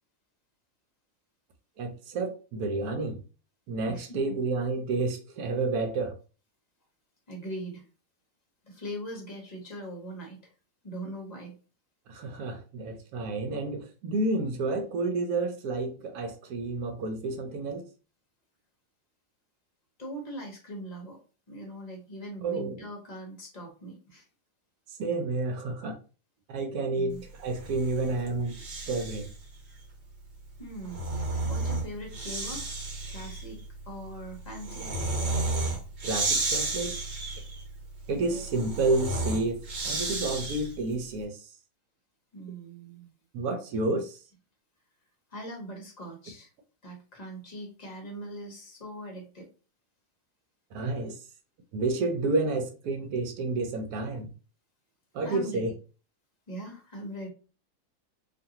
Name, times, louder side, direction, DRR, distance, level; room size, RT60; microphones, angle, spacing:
voice 1, 1.8-3.2 3.7-6.2 12.1-17.9 22.4-22.9 24.9-26.0 26.5-29.3 36.0-36.9 38.1-41.5 43.3-44.2 50.7-51.2 51.7-54.3 55.1-55.7, right 3 dB, 75° right, 5 dB, 1.1 m, -30 dB
voice 2, 3.9-4.4 7.3-7.9 8.6-10.5 10.8-11.5 20.0-21.2 21.5-24.3 26.9-27.2 28.5-28.6 30.6-32.7 33.1-33.6 33.9-34.9 38.1-38.4 42.3-43.1 43.9-44.0 45.3-46.5 46.8-49.5 55.2-55.6 56.5-57.3, right 1 dB, 35° left, 1 dB, 0.7 m, -41 dB
Breathing, 27.4-29.4 30.6-40.9, right 2 dB, 45° right, 1.1 m, -33 dB
2.5 x 2.5 x 2.8 m, 0.35 s
omnidirectional pair, 1.6 m